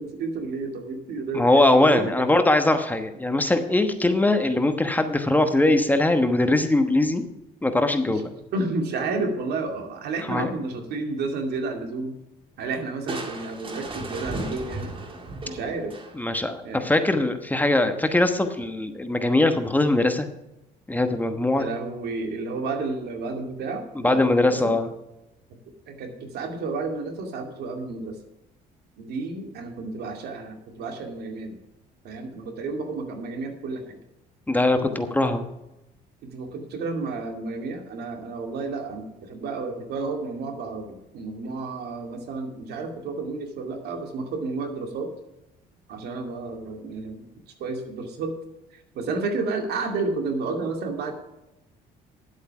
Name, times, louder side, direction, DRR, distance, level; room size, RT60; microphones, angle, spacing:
voice 1, 0.0-2.3 8.1-8.2 8.5-12.2 12.6-14.9 15.4-15.9 16.6-16.8 21.5-24.8 25.9-28.2 29.0-31.6 32.0-34.0 34.8-35.1 36.2-45.1 45.9-47.3 47.6-48.3 48.7-51.1, right 3 dB, 70° right, 4 dB, 2.4 m, -31 dB
voice 2, 1.3-7.3 7.6-8.3 10.3-10.5 16.2-20.3 20.9-21.7 24.0-24.9 34.5-35.5, left 2 dB, 10° left, 7 dB, 1.1 m, -21 dB
Crushing, 13.1-16.5, right 2 dB, 30° right, 2.0 m, -35 dB
10.5 x 8.2 x 5.9 m, 0.92 s
cardioid pair, 110°, 17 cm